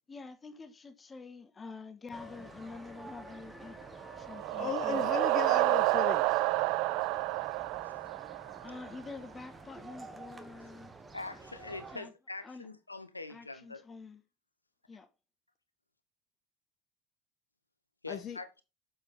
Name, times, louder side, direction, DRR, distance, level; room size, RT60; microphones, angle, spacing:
voice 1, 0.1-3.8 4.2-5.0 8.6-11.0 11.9-12.1 12.4-12.7 13.3-14.2 14.9-15.1, left 4 dB, 20° left, 1.6 m, -47 dB
sound 1, 2.1-10.9, left 2 dB, 5° left, 2.9 m, -57 dB
sound 2, 2.1-12.0, right 3 dB, 20° right, 1.4 m, -50 dB
sound 3, 4.0-8.9, right 20 dB, 55° right, 0.3 m, -29 dB
voice 2, 4.6-6.4 18.1-18.4, left 7 dB, 40° left, 1.3 m, -36 dB
voice 3, 11.1-13.8 18.0-18.6, left 3 dB, 90° left, 1.0 m, -43 dB
7.3 x 7.1 x 3.7 m
figure-of-eight pair, 70°, 0 cm